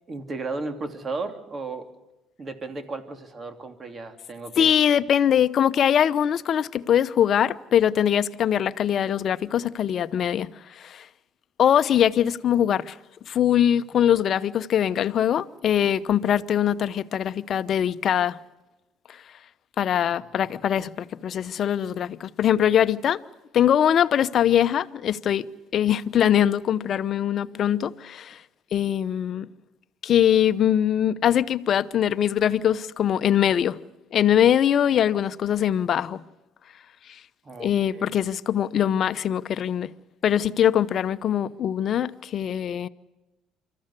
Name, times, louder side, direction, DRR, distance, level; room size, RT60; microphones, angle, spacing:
voice 1, 0.1-1.9 2.4-4.7 37.4-38.1, right 3 dB, 35° right, 3.0 m, -34 dB
voice 2, 4.6-11.1 11.6-13.0 13.3-18.4 19.1-19.2 19.8-23.2 23.5-25.5 25.7-28.4 28.7-29.5 30.0-33.8 34.1-36.2 37.1-37.2 37.6-39.9 40.2-42.9, left 9 dB, 55° left, 0.8 m, -22 dB
25.5 x 14.0 x 9.7 m
supercardioid pair, 75°, 0 cm